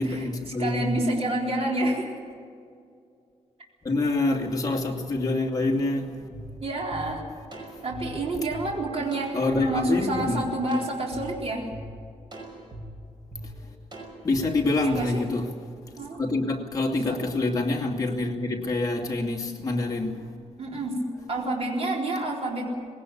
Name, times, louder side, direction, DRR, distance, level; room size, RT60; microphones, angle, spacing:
voice 1, 0.0-1.0 3.8-6.3 9.3-10.5 13.4-13.7 14.2-15.6 15.9-20.3, left 2 dB, 30° left, 1 dB, 2.6 m, -26 dB
voice 2, 0.6-2.2 6.6-7.2 7.5-11.7 14.8-15.2 16.0-16.2 17.1-17.2 20.6-21.0 21.3-22.7, right 1 dB, 55° right, -1 dB, 3.9 m, -28 dB
sound 1, 6.3-6.4 6.9-7.0 7.5-8.6 9.1-9.6 10.1-10.2 10.7-11.2 11.7-11.8 12.3-12.8 13.3-13.4 13.9-14.4 14.9-15.0, right 2 dB, 40° right, 5.7 m, -41 dB
20.0 x 18.0 x 8.6 m, 2.4 s
wide cardioid pair, 155°, 12 cm